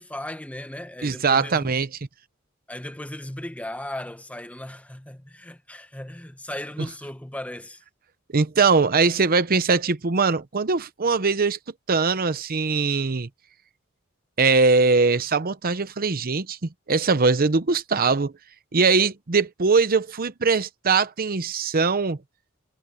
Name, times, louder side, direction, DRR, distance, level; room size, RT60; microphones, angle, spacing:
voice 1, 0.0-1.8 2.7-7.8, left 1 dB, 5° left, 1.0 m, -36 dB
voice 2, 1.0-1.9 8.3-11.6 11.9-13.3 14.4-18.3 18.7-22.2, right 4 dB, 45° right, 0.8 m, -21 dB
head